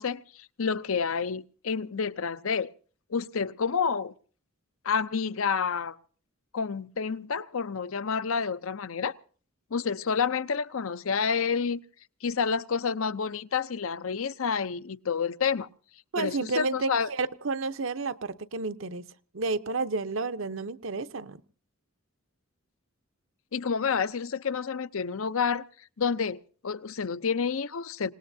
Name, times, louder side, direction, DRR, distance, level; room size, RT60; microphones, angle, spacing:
voice 1, 0.0-2.7 3.1-4.1 4.8-6.0 6.5-9.2 9.7-11.8 12.2-15.7 16.2-17.1 23.5-25.6 26.0-28.1, left 6 dB, 75° left, 0.6 m, -29 dB
voice 2, 16.1-19.0 19.3-21.4, right 3 dB, 65° right, 0.8 m, -31 dB
26.5 x 18.5 x 2.7 m
head